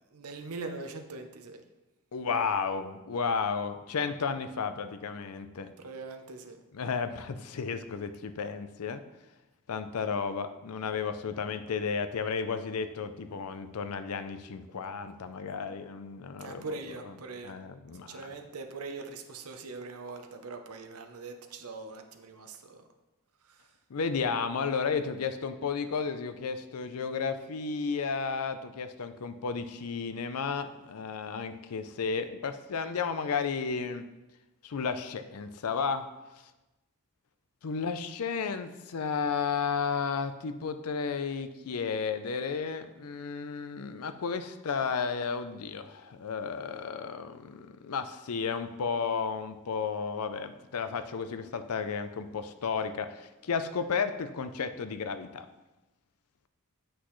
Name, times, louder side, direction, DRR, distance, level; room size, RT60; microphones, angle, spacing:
voice 1, 0.1-1.6 5.8-6.6 16.4-17.5 18.1-22.8 23.5-23.6, right 3 dB, 70° right, 5 dB, 0.8 m, -42 dB
voice 2, 2.1-5.7 6.7-9.0 9.7-16.8 17.0-17.1 17.4-18.3 23.9-34.0 34.6-36.1 37.6-55.5, left 5 dB, 70° left, 10 dB, 0.5 m, -33 dB
8.1 x 6.1 x 3.1 m, 1.0 s
head